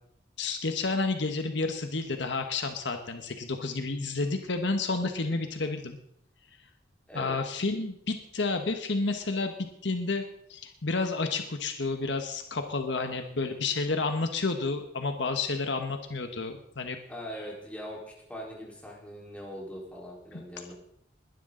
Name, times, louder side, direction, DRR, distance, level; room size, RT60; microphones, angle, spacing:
voice 1, 0.4-6.0 7.1-9.5 9.8-10.2 10.5-17.0, left 3 dB, 70° left, 6 dB, 1.3 m, -30 dB
voice 2, 7.1-7.4 17.1-18.0 18.3-20.7, equal, 5° left, -3 dB, 4.1 m, -41 dB
21.5 x 12.0 x 3.9 m, 0.71 s
head